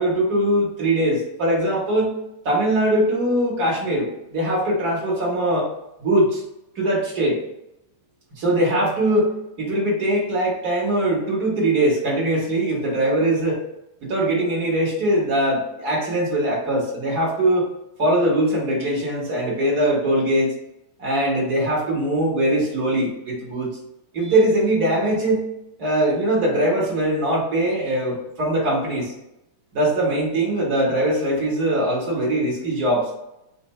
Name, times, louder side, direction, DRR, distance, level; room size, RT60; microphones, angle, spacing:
voice 1, 0.0-2.1 2.4-5.7 6.0-6.4 6.7-7.4 8.4-13.6 14.0-17.7 18.0-20.5 21.0-23.7 24.1-25.4 25.8-29.1 29.7-33.1, right 1 dB, 50° right, -4 dB, 1.2 m, -21 dB
4.5 x 2.6 x 4.2 m, 0.85 s
omnidirectional pair, 3.3 m